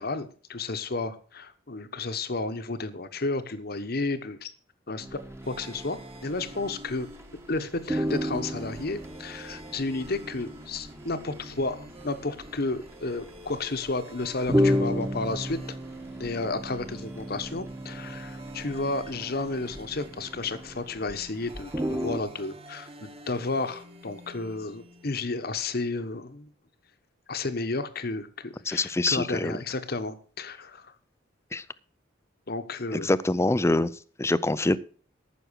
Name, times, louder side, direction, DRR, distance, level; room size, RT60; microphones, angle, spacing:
voice 1, 0.0-4.5 4.9-5.2 5.5-7.1 7.5-15.6 16.2-26.5 27.3-30.9 32.5-33.1, left 3 dB, 50° left, 10 dB, 1.1 m, -32 dB
sound 1, 5.0-7.3 7.5-7.6 7.9-21.2 21.5-22.2, equal, 15° right, 1.3 m, -33 dB
sound 2, 5.4-25.2, right 1 dB, 30° right, 1.5 m, -48 dB
voice 2, 28.7-29.6 31.5-31.6 32.9-33.9 34.2-34.8, left 2 dB, 15° left, 16 dB, 0.5 m, -25 dB
14.0 x 6.3 x 6.4 m, 0.41 s
head